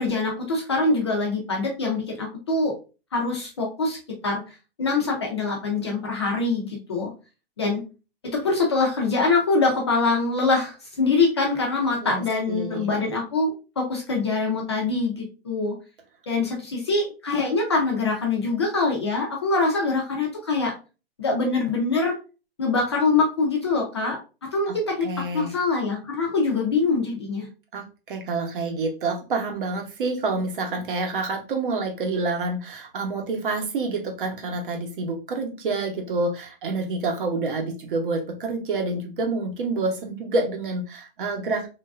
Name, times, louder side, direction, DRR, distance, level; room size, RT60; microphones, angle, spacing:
voice 1, 0.0-2.7 3.1-4.0 4.2-4.4 4.8-7.1 7.6-7.8 8.2-15.7 16.3-20.7 21.2-22.2 22.6-25.1 25.3-27.5, left 3 dB, 30° left, -1 dB, 0.4 m, -24 dB
voice 2, 12.5-12.9 24.7-24.8 25.0-25.5 27.7-41.7, right 3 dB, 55° right, 3 dB, 0.8 m, -28 dB
3.1 x 2.3 x 2.3 m, 0.32 s
hypercardioid pair, 175°, 31 cm